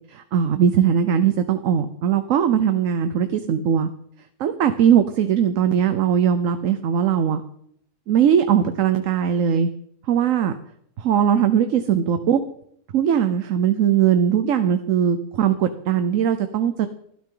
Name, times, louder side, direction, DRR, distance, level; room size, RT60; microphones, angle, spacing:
voice 1, 0.1-3.9 4.4-7.4 8.1-9.7 10.1-10.5 11.0-12.4 12.9-16.9, right 8 dB, 65° right, 9 dB, 1.1 m, -20 dB
18.0 x 12.5 x 3.8 m, 0.69 s
omnidirectional pair, 1.5 m